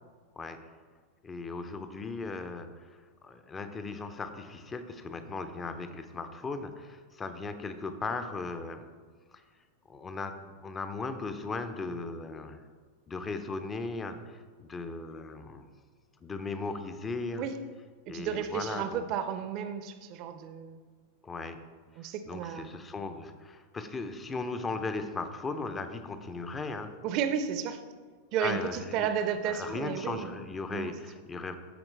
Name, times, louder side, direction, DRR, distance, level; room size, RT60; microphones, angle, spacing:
voice 1, 1.2-8.9 9.3-9.4 9.9-12.6 13.1-15.7 16.2-17.5 18.1-19.0 21.2-21.6 22.3-26.9 28.4-29.1 29.4-31.6, left 3 dB, 20° left, 9 dB, 0.6 m, -37 dB
voice 2, 18.1-20.8 22.0-22.8 27.0-27.8 28.3-30.4 30.7-30.9, right 8 dB, 40° right, 9 dB, 0.6 m, -33 dB
13.0 x 4.4 x 3.3 m, 1.5 s
figure-of-eight pair, 90°, 0 cm